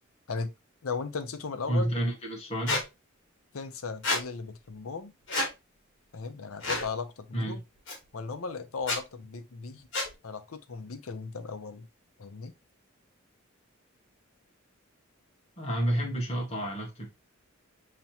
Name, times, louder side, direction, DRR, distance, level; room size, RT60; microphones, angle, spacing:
voice 1, 0.8-1.9 3.5-5.1 6.1-7.6 8.1-9.9 10.2-11.9 12.2-12.5, left 4 dB, 80° left, 0.7 m, -36 dB
voice 2, 1.7-2.8 7.3-7.6 15.6-17.1, right 1 dB, 30° left, 1.4 m, -30 dB
Squeak, 2.7-2.8 4.0-4.2 5.3-5.5 6.6-6.9 7.9-8.0 8.8-9.0 9.9-10.1, left 2 dB, 60° left, 1.5 m, -29 dB
5.6 x 3.0 x 2.8 m
head